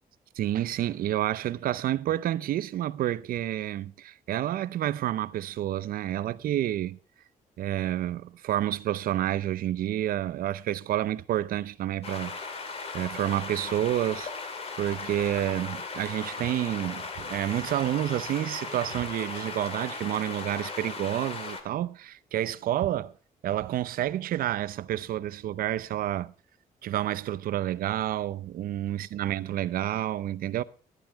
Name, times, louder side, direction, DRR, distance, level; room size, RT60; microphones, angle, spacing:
voice 1, 0.4-7.0 7.6-12.4 12.9-14.3 14.8-23.1 23.4-26.3 26.8-30.6, right 12 dB, 75° right, 0.7 m, -29 dB
sound 1, 12.0-21.6, left 4 dB, 40° left, 2.3 m, -37 dB
14.0 x 11.0 x 4.6 m
cardioid pair, 135°, 15 cm